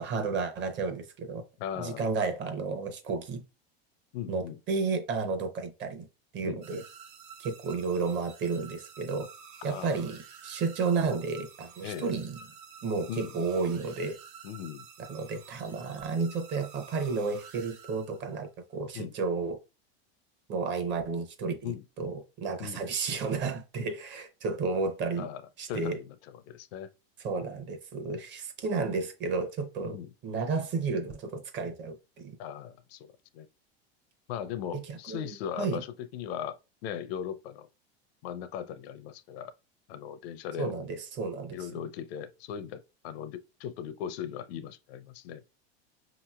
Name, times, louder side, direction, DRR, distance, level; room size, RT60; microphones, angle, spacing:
voice 1, 0.0-1.4 1.8-3.4 4.3-6.1 6.3-6.8 7.4-9.3 9.6-12.4 12.8-14.2 15.1-19.6 20.5-25.3 25.6-26.0 27.2-30.0 30.2-32.4 34.7-35.3 35.6-35.8 40.6-41.6, right 4 dB, 35° right, 0.7 m, -32 dB
voice 2, 1.6-2.1 4.1-4.6 6.4-6.8 9.7-10.0 11.8-12.1 13.1-13.4 14.4-14.9 18.9-19.1 21.6-21.8 22.6-22.8 25.2-25.4 25.7-26.9 27.4-27.5 29.8-30.1 32.4-33.5 34.3-37.7 38.2-39.5 39.9-40.7 41.5-45.4, left 9 dB, 70° left, 0.5 m, -38 dB
sound 1, 6.6-18.5, right 7 dB, 75° right, 0.9 m, -50 dB
5.3 x 2.9 x 2.3 m
supercardioid pair, 130°, 32 cm